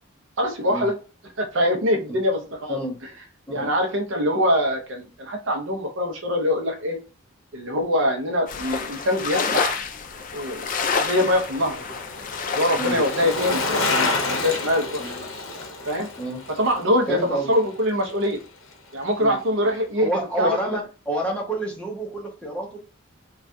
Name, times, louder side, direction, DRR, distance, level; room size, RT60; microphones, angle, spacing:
voice 1, 0.4-1.0 1.4-2.8 3.5-7.0 7.5-9.8 10.3-10.7 11.0-12.0 12.6-15.3 15.9-16.1 16.6-18.4 18.9-20.1 20.4-20.6, left 1 dB, 65° right, 4 dB, 0.6 m, -23 dB
sound 1, 8.5-13.7, left 5 dB, 40° left, 0.3 m, -28 dB
Bicycle, 10.0-18.4 18.7-18.8, left 3 dB, 70° left, 0.6 m, -30 dB
voice 2, 17.1-17.5 19.2-19.4 20.0-22.8, right 1 dB, 5° left, -1 dB, 0.7 m, -28 dB
3.3 x 2.3 x 2.6 m, 0.33 s
head